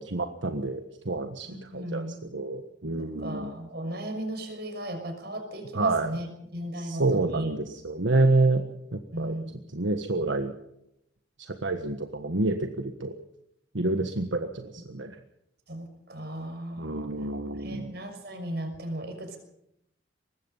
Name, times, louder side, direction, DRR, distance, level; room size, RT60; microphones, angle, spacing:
voice 1, 0.0-3.5 5.7-6.1 6.8-8.6 8.9-9.3 9.7-10.5 11.6-13.1 13.7-15.2 16.8-17.9, right 2 dB, 80° right, 6 dB, 1.5 m, -28 dB
voice 2, 1.5-2.2 3.0-6.3 6.5-7.5 9.1-9.6 15.7-16.9 17.6-19.4, right 1 dB, 60° right, 6 dB, 6.0 m, -36 dB
24.0 x 20.5 x 5.6 m, 0.79 s
head